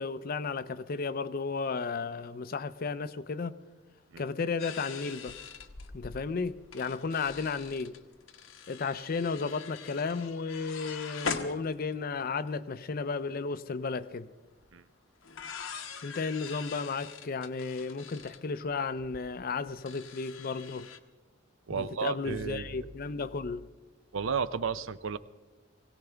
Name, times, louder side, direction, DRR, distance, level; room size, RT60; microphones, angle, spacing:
voice 1, 0.0-3.6 4.2-5.4 5.9-8.0 8.7-14.3 16.0-20.9 21.8-23.7, left 4 dB, 45° left, 0.5 m, -34 dB
sound 1, 4.6-12.2 12.5-12.6 12.7-13.1 14.6-14.7 15.2-21.0, left 5 dB, 90° left, 1.0 m, -43 dB
voice 2, 21.7-22.9 24.1-25.2, right 6 dB, 75° right, 0.6 m, -33 dB
21.0 x 17.0 x 3.4 m
head